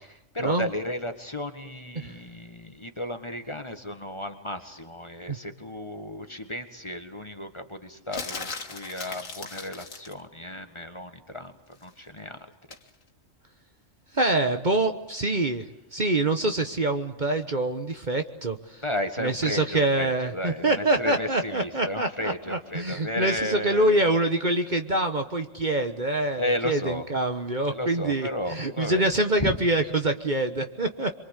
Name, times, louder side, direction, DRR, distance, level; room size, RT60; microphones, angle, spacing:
voice 1, 0.3-12.5 18.8-24.0 26.4-27.0 27.6-29.1 29.4-29.6, left 1 dB, 20° left, 7 dB, 1.7 m, -33 dB
sound 1, 8.1-10.2 12.7-12.9, left 4 dB, 80° left, 2.2 m, -37 dB
voice 2, 14.1-15.7 15.9-18.8 19.2-31.2, right 2 dB, 35° right, 6 dB, 1.4 m, -25 dB
27.5 x 23.5 x 8.3 m, 0.80 s
omnidirectional pair, 1.3 m